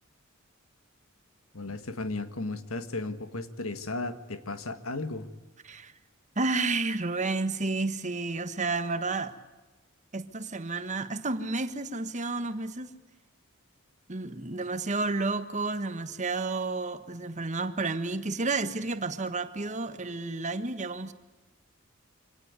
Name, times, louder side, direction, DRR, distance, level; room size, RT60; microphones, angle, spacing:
voice 1, 1.5-5.3, left 2 dB, 85° left, 11 dB, 1.7 m, -35 dB
voice 2, 6.3-9.3 10.1-12.9 14.1-21.1, right 3 dB, 35° right, 11 dB, 1.3 m, -31 dB
25.5 x 18.0 x 9.7 m, 1.2 s
head